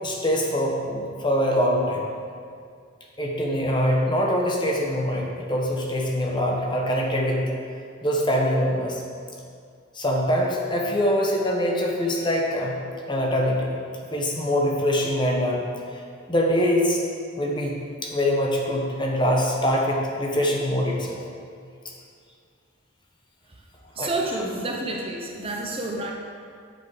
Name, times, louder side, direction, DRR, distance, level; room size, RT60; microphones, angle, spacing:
voice 1, 0.0-2.1 3.2-7.6 8.0-9.0 9.9-12.7 13.1-13.7 14.1-15.6 16.3-17.0 17.4-21.2 24.0-24.1, equal, 25° left, -1 dB, 1.1 m, -23 dB
voice 2, 23.9-26.1, right 2 dB, 30° right, 0 dB, 0.8 m, -29 dB
7.9 x 7.1 x 4.9 m, 2.2 s
head